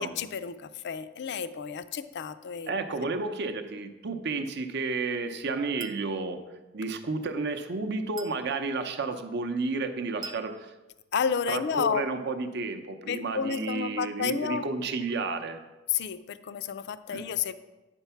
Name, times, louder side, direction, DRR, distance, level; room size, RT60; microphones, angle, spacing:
voice 1, 0.0-2.7 3.2-3.3 11.1-12.1 13.1-14.6 15.9-17.5, left 7 dB, 60° left, 12 dB, 0.4 m, -31 dB
voice 2, 2.7-6.4 6.7-10.7 11.5-15.6 17.1-17.2, right 3 dB, 55° right, 7 dB, 0.6 m, -31 dB
Chink clink, 5.8-6.1 8.2-8.5 10.2-10.5, right 3 dB, 20° right, 0.4 m, -43 dB
9.0 x 4.5 x 5.7 m, 1.1 s
head